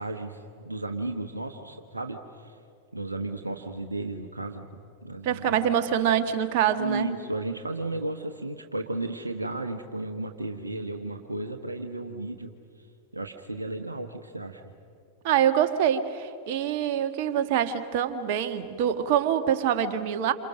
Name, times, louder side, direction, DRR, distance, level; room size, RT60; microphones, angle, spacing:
voice 1, 0.0-2.6 2.9-4.7 5.0-5.7 6.7-12.5 13.1-14.7, right 2 dB, 80° right, 5 dB, 1.2 m, -34 dB
voice 2, 5.2-7.1 15.2-20.3, right 9 dB, 50° right, 9 dB, 1.5 m, -25 dB
28.0 x 28.0 x 6.5 m, 2.4 s
figure-of-eight pair, 90°, 0 cm